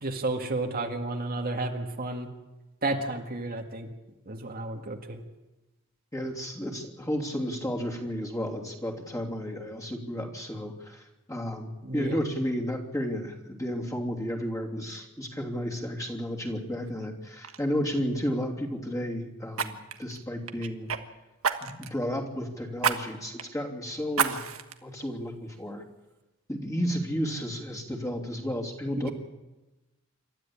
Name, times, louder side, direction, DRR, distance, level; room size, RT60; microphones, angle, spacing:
voice 1, 0.0-2.3 2.8-3.9 4.3-5.2 11.8-12.2, right 2 dB, 45° right, 3 dB, 1.9 m, -32 dB
voice 2, 6.1-20.9 21.6-24.4 24.8-25.8 26.5-29.1, equal, 15° left, -1 dB, 3.1 m, -32 dB
Fire, 16.9-17.1 17.4-17.6 19.5-21.0 21.4-22.0 22.8-23.0 23.4-23.5 24.1-24.7 25.3-25.4, right 6 dB, 85° right, 1.4 m, -29 dB
27.5 x 13.0 x 8.8 m, 1.1 s
head